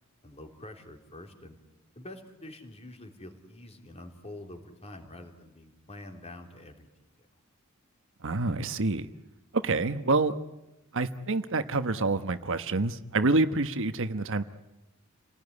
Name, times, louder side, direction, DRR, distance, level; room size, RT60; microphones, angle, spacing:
voice 1, 0.2-1.6 2.0-7.3, left 1 dB, 30° left, 4 dB, 3.7 m, -46 dB
voice 2, 8.2-9.1 9.5-10.3 10.9-14.4, right 3 dB, 60° right, 10 dB, 1.1 m, -27 dB
30.0 x 19.0 x 9.7 m, 0.96 s
head